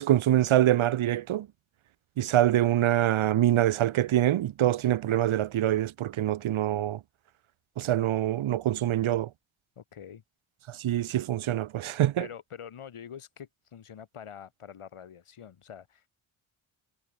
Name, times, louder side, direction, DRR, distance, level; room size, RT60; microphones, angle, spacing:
voice 1, 0.0-1.5 2.2-7.0 7.8-9.3 10.7-12.3, right 12 dB, 70° right, 0.8 m, -25 dB
voice 2, 9.8-10.2 12.2-16.0, left 8 dB, 80° left, 7.2 m, -45 dB
cardioid pair, 75°, 50 cm